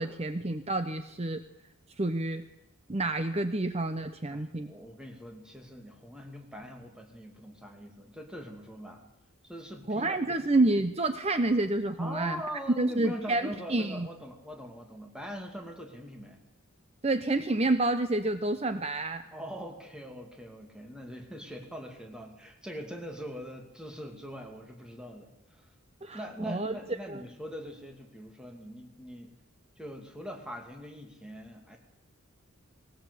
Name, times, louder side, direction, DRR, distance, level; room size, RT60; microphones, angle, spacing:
voice 1, 0.0-1.4 2.0-2.4 2.9-4.7 9.9-12.4 12.8-14.1 17.0-19.2 26.0-26.8 27.1-27.2, right 2 dB, 30° right, 10 dB, 0.8 m, -29 dB
voice 2, 4.3-9.0 9.4-10.4 12.0-16.4 19.3-25.7 26.1-29.3 29.8-31.8, equal, 5° right, 2 dB, 2.5 m, -42 dB
20.5 x 19.5 x 8.3 m, 0.85 s
head